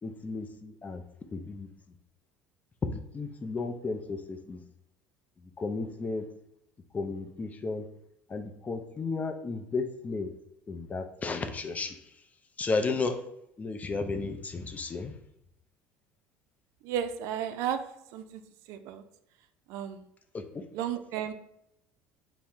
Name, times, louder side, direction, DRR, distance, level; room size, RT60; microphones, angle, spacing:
voice 1, 0.0-1.0 1.3-1.7 2.9-4.6 5.4-6.3 6.9-7.9 8.3-10.3 10.7-12.2 12.6-13.2 13.6-15.1 20.3-20.6, left 3 dB, 25° left, 7 dB, 0.5 m, -34 dB
voice 2, 16.8-17.8 18.1-18.4 18.7-19.0 19.7-20.1 20.7-21.3, right 9 dB, 70° right, 10 dB, 0.3 m, -33 dB
4.2 x 2.1 x 3.5 m, 0.78 s
supercardioid pair, 85°, 6 cm